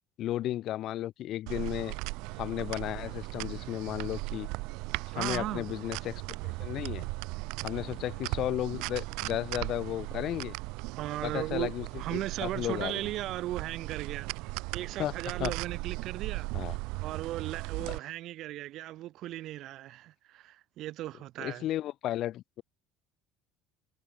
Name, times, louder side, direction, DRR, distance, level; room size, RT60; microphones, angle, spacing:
voice 1, 0.2-2.0 2.4-4.5 5.1-7.1 7.6-10.6 11.2-11.9 12.1-13.0 15.0-15.1 15.4-15.5 16.5-16.8 17.8-18.0 21.4-22.6, left 13 dB, 55° left, 1.8 m, -34 dB
sound 1, 1.5-18.0, right 25 dB, 75° right, 2.2 m, -37 dB
voice 2, 5.1-5.8 10.9-11.7 12.0-21.7, right 15 dB, 60° right, 1.9 m, -37 dB
cardioid pair, 120°, 0 cm